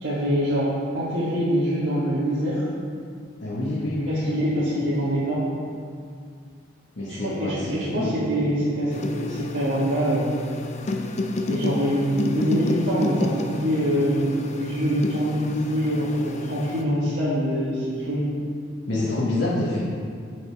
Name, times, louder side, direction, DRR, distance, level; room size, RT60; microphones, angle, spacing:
voice 1, 0.0-2.7 4.1-5.4 7.1-10.4 11.4-18.3, equal, 75° right, -10 dB, 1.5 m, -24 dB
voice 2, 3.4-4.1 7.0-8.1 18.9-19.8, left 2 dB, 65° left, -8 dB, 1.4 m, -27 dB
sound 1, 8.9-16.8, left 2 dB, 35° left, 0.4 m, -31 dB
6.6 x 6.5 x 4.8 m, 2.2 s
head